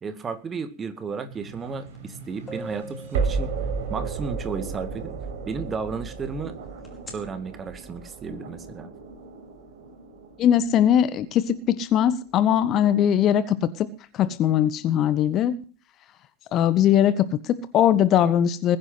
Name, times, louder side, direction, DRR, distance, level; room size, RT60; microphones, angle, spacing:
voice 1, 0.0-3.5 3.9-5.1 5.5-6.6 7.1-8.9, right 5 dB, 20° right, 10 dB, 2.1 m, -33 dB
sound 1, 1.3-12.3, right 5 dB, 55° right, 6.2 m, -34 dB
sound 2, 1.9-2.0 2.5-4.2 6.8-7.1, equal, 15° left, 4.8 m, -40 dB
voice 2, 10.4-15.6 16.5-18.8, left 10 dB, 35° left, 16 dB, 1.4 m, -21 dB
21.0 x 10.5 x 5.9 m, 0.37 s
figure-of-eight pair, 90°, 0 cm